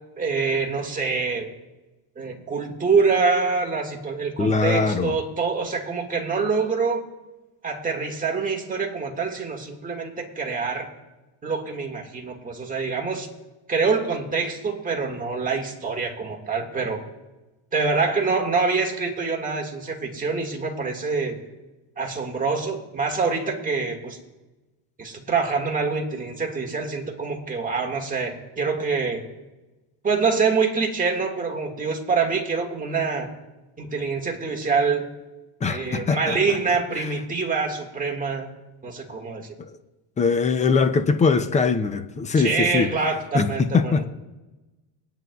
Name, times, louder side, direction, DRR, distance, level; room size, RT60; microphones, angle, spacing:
voice 1, 0.2-1.5 2.2-7.0 7.6-10.9 11.4-13.3 13.7-17.0 17.7-21.4 22.0-24.2 25.0-29.2 30.0-33.3 33.8-35.1 35.7-38.5 38.8-39.5 42.3-44.1, right 4 dB, 15° right, 1.6 m, -25 dB
voice 2, 4.4-5.2 35.6-36.4 39.6-39.7 40.2-42.9 43.3-44.0, left 4 dB, 15° left, 0.3 m, -21 dB
23.0 x 9.2 x 2.3 m
cardioid pair, 145°, 48 cm